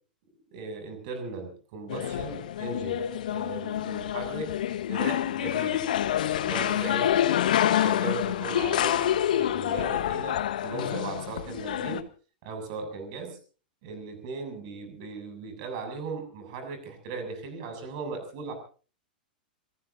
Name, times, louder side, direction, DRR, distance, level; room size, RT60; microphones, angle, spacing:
voice 1, 0.5-5.8 6.4-7.1 7.5-12.1 12.4-13.4 13.8-18.5, right 4 dB, 50° right, 7 dB, 7.5 m, -38 dB
sound 1, 1.9-12.0, left 11 dB, 60° left, 1.3 m, -27 dB
27.0 x 19.0 x 2.8 m, 0.39 s
figure-of-eight pair, 95°, 5 cm